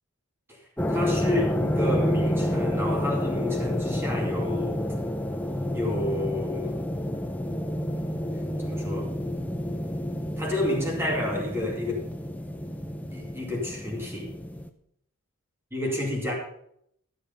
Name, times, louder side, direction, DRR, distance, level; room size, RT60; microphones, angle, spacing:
sound 1, 0.8-14.7, equal, 5° left, 0.6 m, -29 dB
voice 1, 0.9-4.8 5.7-6.8 8.6-9.1 10.4-12.1 13.1-14.3 15.7-16.3, left 1 dB, 10° right, -1 dB, 2.6 m, -30 dB
13.0 x 6.9 x 5.5 m, 0.72 s
head